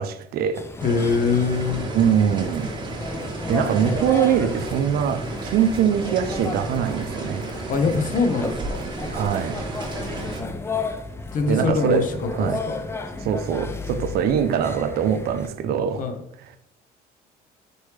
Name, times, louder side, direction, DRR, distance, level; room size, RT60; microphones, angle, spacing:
voice 1, 0.0-0.7 1.9-2.7 3.5-7.4 9.1-9.7 11.5-12.1 12.3-12.6 13.2-16.0, right 8 dB, 70° right, 0.5 m, -23 dB
sound 1, 0.5-15.5, left 3 dB, 15° left, 0.4 m, -34 dB
voice 2, 0.8-1.9 7.7-8.8 11.3-12.1 12.4-12.8 16.0-16.2, left 4 dB, 50° left, 0.7 m, -23 dB
sound 2, 0.8-10.4, right 2 dB, 25° right, 1.2 m, -32 dB
4.3 x 3.3 x 3.2 m
cardioid pair, 110°, 17 cm